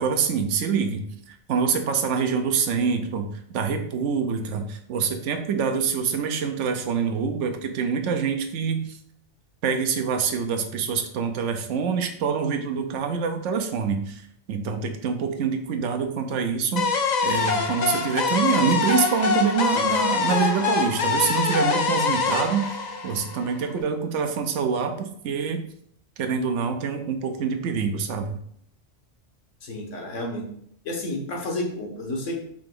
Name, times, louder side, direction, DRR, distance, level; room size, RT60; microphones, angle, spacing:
voice 1, 0.0-9.0 9.6-14.2 14.5-22.8 23.0-25.6 26.2-28.4, right 6 dB, 75° right, 5 dB, 0.9 m, -26 dB
sound 1, 16.8-23.7, left 5 dB, 55° left, 0.5 m, -24 dB
voice 2, 29.6-30.4 30.8-32.4, left 1 dB, 85° left, 0 dB, 1.4 m, -30 dB
4.9 x 2.9 x 3.7 m, 0.67 s
omnidirectional pair, 1.3 m